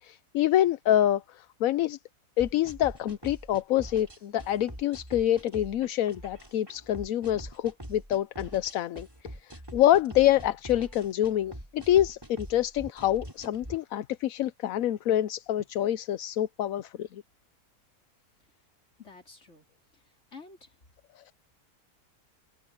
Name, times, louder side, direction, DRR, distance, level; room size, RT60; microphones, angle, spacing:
voice 1, 0.0-2.0 2.4-17.2 21.2-21.3, left 12 dB, 70° left, 1.0 m, -26 dB
sound 1, 2.4-13.8, equal, 15° right, 6.2 m, -44 dB
voice 2, 19.0-19.6 20.3-20.7, left 4 dB, 45° left, 3.7 m, -49 dB
omnidirectional pair, 1.6 m